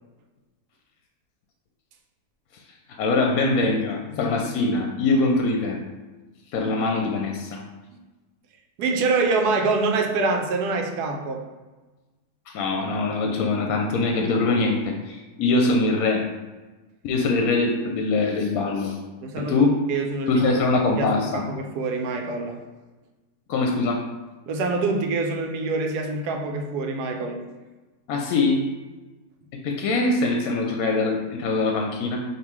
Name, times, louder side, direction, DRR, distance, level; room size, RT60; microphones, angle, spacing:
voice 1, 2.9-5.8 6.5-7.6 12.5-16.2 17.0-19.0 19.4-19.7 20.3-21.4 23.5-24.0 28.1-28.6 29.6-32.2, left 3 dB, 70° left, 2 dB, 1.0 m, -23 dB
voice 2, 8.8-11.4 19.2-20.5 21.0-22.6 24.5-27.4, right 3 dB, 85° right, 3 dB, 1.2 m, -25 dB
5.3 x 2.8 x 3.1 m, 1.2 s
omnidirectional pair, 1.6 m